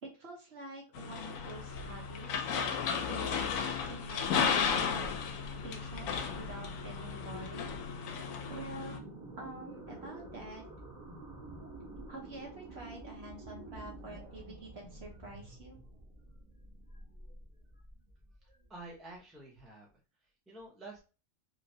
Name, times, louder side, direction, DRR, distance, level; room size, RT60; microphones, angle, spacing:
voice 1, 0.0-2.5 3.1-5.2 5.6-7.7 8.1-9.0 9.4-10.6 12.1-15.8, right 2 dB, 50° right, -1 dB, 1.0 m, -47 dB
sound 1, 1.0-9.0, left 6 dB, 70° left, 0.9 m, -34 dB
sound 2, 1.7-19.1, right 1 dB, 30° right, 1.1 m, -50 dB
voice 2, 18.7-21.0, right 2 dB, ahead, -2 dB, 0.6 m, -50 dB
3.1 x 2.9 x 2.7 m, 0.33 s
omnidirectional pair, 1.5 m